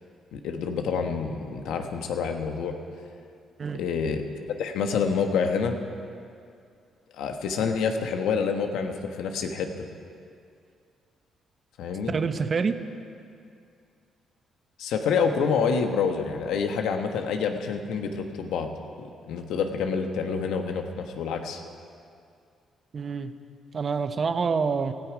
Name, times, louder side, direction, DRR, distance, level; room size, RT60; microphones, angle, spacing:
voice 1, 0.3-2.7 3.7-4.2 4.6-5.8 7.1-9.9 11.8-12.1 14.8-18.7 19.0-21.6, left 6 dB, 85° left, 5 dB, 1.3 m, -27 dB
voice 2, 12.1-12.8 22.9-23.3 23.7-24.9, right 5 dB, 45° right, 10 dB, 0.9 m, -26 dB
17.5 x 13.5 x 5.1 m, 2.4 s
cardioid pair, 90°, 0 cm